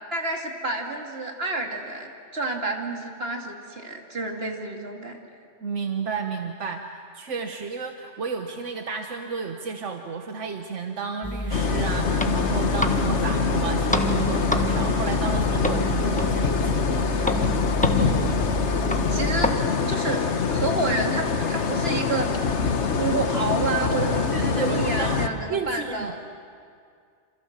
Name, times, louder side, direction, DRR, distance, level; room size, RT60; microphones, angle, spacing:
voice 1, 0.1-5.2 17.9-18.3 19.1-20.2 20.5-26.2, right 2 dB, 55° right, 2 dB, 2.8 m, -29 dB
voice 2, 5.6-17.1 24.3-25.2 25.5-26.2, right 5 dB, 85° right, 5 dB, 1.5 m, -32 dB
sound 1, 11.2-19.5, equal, 5° left, 1.3 m, -27 dB
sound 2, 11.5-25.3, left 5 dB, 70° left, 1.5 m, -25 dB
27.5 x 27.5 x 7.3 m, 2.2 s
omnidirectional pair, 1.2 m